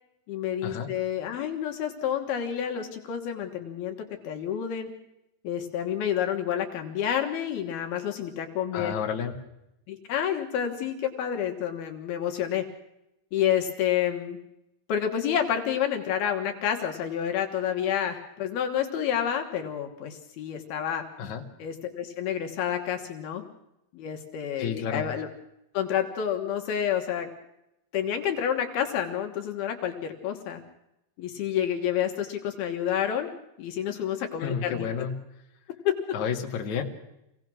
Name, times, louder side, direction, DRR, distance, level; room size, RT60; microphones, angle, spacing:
voice 1, 0.3-4.0 4.2-4.9 5.4-8.9 9.9-12.6 13.3-14.4 14.9-21.0 21.6-23.4 23.9-25.3 25.7-27.3 27.9-30.6 31.2-33.3 33.6-34.9 35.8-35.9, left 9 dB, 70° left, 3 dB, 3.3 m, -29 dB
voice 2, 8.7-9.3 21.2-21.4 24.6-25.1 34.4-35.2 36.1-36.8, left 7 dB, 55° left, 1 dB, 2.9 m, -30 dB
26.0 x 17.5 x 6.3 m, 0.87 s
omnidirectional pair, 4.6 m